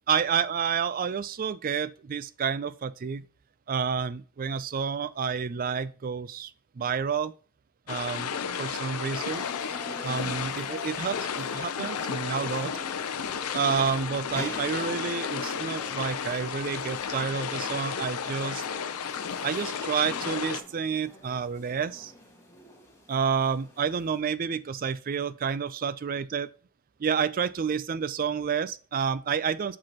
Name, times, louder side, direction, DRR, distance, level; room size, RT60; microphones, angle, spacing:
voice 1, 0.1-3.2 3.7-7.3 7.9-9.4 10.0-12.7 13.5-18.6 19.4-22.1 23.1-26.5 27.0-29.8, right 6 dB, 40° right, 0.4 m, -29 dB
sound 1, 7.9-20.6, left 7 dB, 80° left, 0.6 m, -33 dB
sound 2, 9.1-24.2, left 2 dB, 15° left, 1.5 m, -45 dB
7.6 x 6.1 x 2.9 m
head